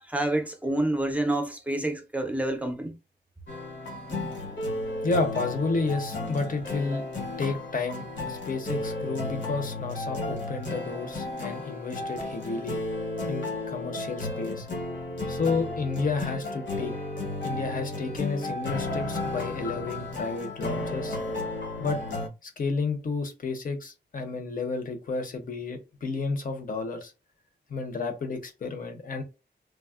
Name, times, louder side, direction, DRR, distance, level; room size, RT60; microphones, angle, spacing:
voice 1, 0.1-2.9, right 1 dB, 10° right, 0.4 m, -28 dB
sound 1, 3.5-22.3, left 2 dB, 85° left, 1.1 m, -33 dB
voice 2, 5.0-7.0 7.4-12.8 13.3-14.7 15.3-16.9 17.4-21.2 21.8-22.0 22.4-27.1 27.7-29.2, left 4 dB, 50° left, 0.6 m, -31 dB
3.4 x 2.0 x 2.3 m
wide cardioid pair, 170°, 18 cm